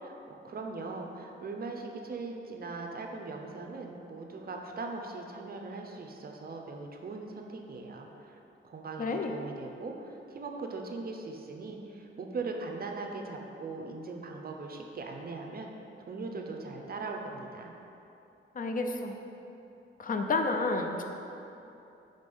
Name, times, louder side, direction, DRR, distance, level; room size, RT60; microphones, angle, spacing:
voice 1, 0.0-8.4 8.6-15.7 16.1-17.7, right 3 dB, 45° right, 2 dB, 0.6 m, -40 dB
voice 2, 9.0-9.3 18.6-19.2 20.0-21.0, left 3 dB, 40° left, 4 dB, 0.5 m, -30 dB
5.1 x 4.2 x 5.4 m, 2.9 s
cardioid pair, 100°, 21 cm